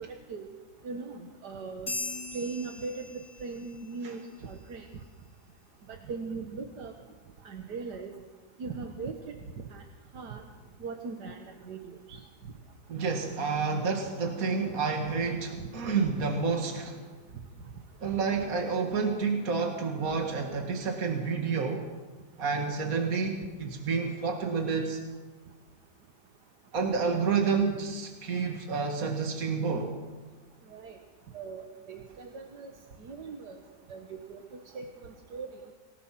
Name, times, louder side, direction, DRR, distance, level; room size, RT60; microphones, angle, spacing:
voice 1, 0.1-0.5 0.8-1.9 2.3-4.9 5.9-6.9 7.4-8.1 8.6-9.1 9.7-9.8 10.1-10.4 10.8-11.8 12.1-12.2 30.7-31.0 31.3-32.7 33.0-33.6 33.9-34.9 35.3-35.5, right 4 dB, 85° right, 4 dB, 1.9 m, -39 dB
sound 1, 1.9-3.7, left 2 dB, 50° left, 3.6 m, -38 dB
voice 2, 12.9-17.0 18.0-21.9 22.4-25.0 26.7-29.9, right 5 dB, 60° right, 2 dB, 2.3 m, -29 dB
27.0 x 18.0 x 6.0 m, 1.3 s
omnidirectional pair, 1.7 m